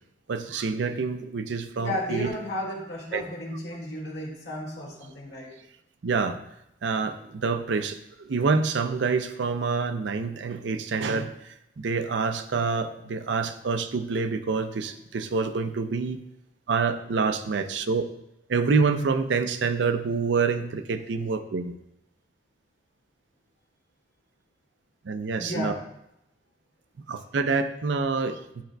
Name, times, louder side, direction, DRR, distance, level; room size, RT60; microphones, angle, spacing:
voice 1, 0.3-2.3 3.1-3.2 6.0-6.4 6.8-16.2 16.7-18.0 18.5-21.7 25.0-25.7 27.1-28.6, right 4 dB, 85° right, 9 dB, 0.5 m, -27 dB
voice 2, 1.8-5.5 25.4-25.8, left 1 dB, 70° left, -2 dB, 1.9 m, -33 dB
10.5 x 4.9 x 2.2 m, 0.82 s
head